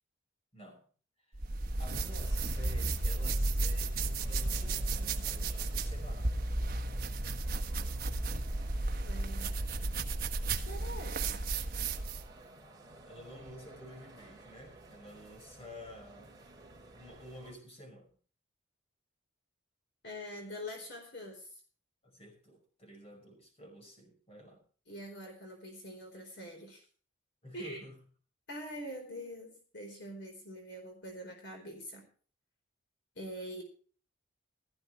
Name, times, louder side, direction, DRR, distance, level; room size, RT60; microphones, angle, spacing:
voice 1, 0.5-0.8 1.3-1.5 1.8-6.4 13.1-16.4 16.9-18.1 22.0-24.6 27.4-28.0, equal, 30° left, 3 dB, 5.4 m, -51 dB
sound 1, 1.3-12.3, right 2 dB, 50° right, 1.4 m, -33 dB
sound 2, 2.0-17.5, right 2 dB, 20° right, 2.7 m, -55 dB
voice 2, 9.0-9.7 10.5-11.5 20.0-21.5 24.9-26.8 27.5-27.8 28.5-32.0 33.2-33.6, equal, 60° left, 3 dB, 4.4 m, -44 dB
16.5 x 14.0 x 3.3 m, 0.41 s
head